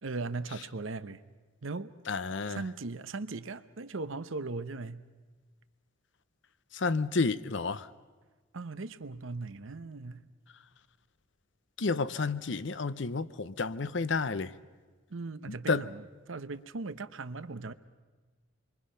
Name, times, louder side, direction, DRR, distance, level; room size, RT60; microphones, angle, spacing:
voice 1, 0.0-1.2 1.6-1.9 2.5-5.0 8.5-10.3 15.1-17.7, right 3 dB, 70° right, 0.8 m, -38 dB
voice 2, 2.1-2.6 6.7-7.9 11.8-14.5 15.7-15.8, left 4 dB, 60° left, 0.7 m, -30 dB
27.5 x 23.5 x 5.6 m
head